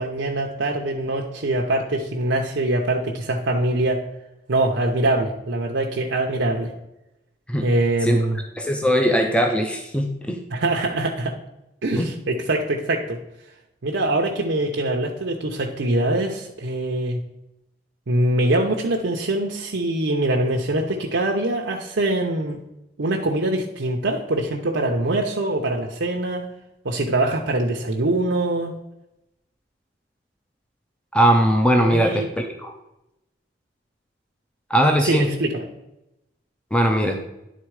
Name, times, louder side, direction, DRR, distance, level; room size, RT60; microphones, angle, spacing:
voice 1, 0.0-4.0 4.5-6.7 7.6-8.4 10.5-11.3 11.8-13.2 13.8-17.2 18.1-22.6 23.0-26.5 26.8-28.8 31.9-32.3 35.0-35.7, right 2 dB, 90° right, 0 dB, 0.8 m, -23 dB
voice 2, 8.6-10.4 12.0-12.1 31.1-32.7 34.7-35.3 36.7-37.2, equal, 5° left, 3 dB, 0.5 m, -20 dB
10.0 x 4.1 x 4.7 m, 0.91 s
head